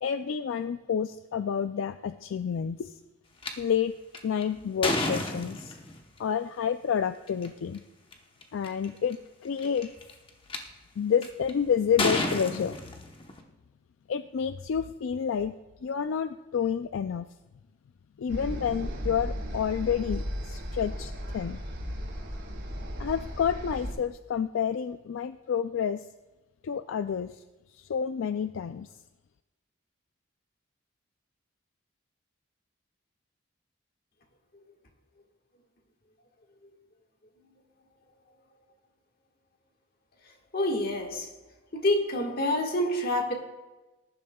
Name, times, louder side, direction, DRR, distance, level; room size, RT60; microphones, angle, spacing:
voice 1, 0.0-3.0 3.6-3.9 4.2-5.8 6.2-7.8 8.5-9.9 11.0-12.8 14.1-15.5 15.8-17.3 18.2-21.6 23.0-26.1 26.6-27.4 27.8-28.9, left 7 dB, 75° left, 10 dB, 0.3 m, -29 dB
sound 1, 3.4-3.5 4.1-6.0 7.3-7.5 8.1-8.2 8.4-8.9 9.6-10.6 11.2-11.5 12.0-13.4, left 2 dB, 25° left, 0.9 m, -30 dB
sound 2, 18.3-23.9, equal, 70° right, 2.9 m, -35 dB
voice 2, 40.5-41.3 41.7-43.3, left 1 dB, 45° left, 2 dB, 1.6 m, -27 dB
19.5 x 11.0 x 2.3 m, 1.1 s
head